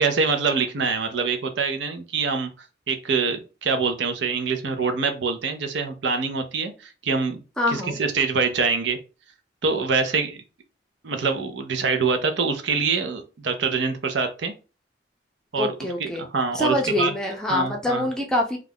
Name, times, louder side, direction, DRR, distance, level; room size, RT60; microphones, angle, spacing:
voice 1, 0.0-2.5 2.9-7.4 7.7-9.0 9.6-10.4 11.0-14.5 15.5-15.7 16.0-17.1 17.5-18.1, right 4 dB, 75° right, 6 dB, 0.6 m, -25 dB
voice 2, 7.6-8.0 15.6-16.2 16.5-18.6, left 1 dB, 5° left, 0 dB, 0.5 m, -25 dB
2.4 x 2.2 x 3.4 m, 0.32 s
head